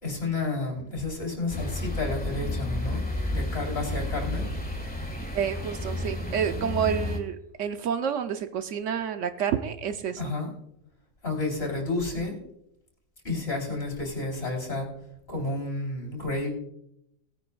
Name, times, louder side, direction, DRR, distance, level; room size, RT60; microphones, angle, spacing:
voice 1, 0.0-4.5 10.2-10.5 11.2-12.4 13.2-14.9 15.3-16.5, left 2 dB, 50° left, 1 dB, 3.5 m, -31 dB
sound 1, 1.5-7.2, left 1 dB, 5° left, 1.5 m, -31 dB
voice 2, 5.3-10.3, right 8 dB, 75° right, 8 dB, 1.0 m, -29 dB
19.0 x 9.4 x 2.3 m, 0.79 s
omnidirectional pair, 1.3 m